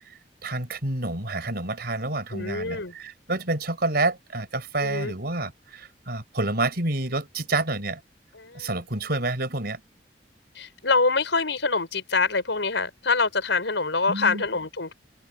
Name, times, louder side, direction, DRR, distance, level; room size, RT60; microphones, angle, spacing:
voice 1, 0.4-8.0 8.5-9.8 14.1-14.4, right 2 dB, 60° right, 4.6 m, -28 dB
voice 2, 2.3-2.9 4.8-5.1 8.3-8.7 10.5-14.9, left 4 dB, 90° left, 5.0 m, -25 dB
open air
head